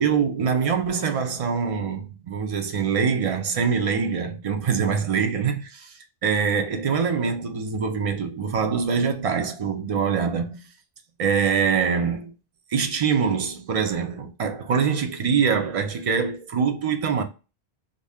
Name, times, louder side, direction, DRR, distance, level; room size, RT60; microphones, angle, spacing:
voice 1, 0.0-10.6 11.2-12.3 12.7-17.2, right 6 dB, 60° right, 0.3 m, -24 dB
2.6 x 2.1 x 3.3 m
omnidirectional pair, 1.1 m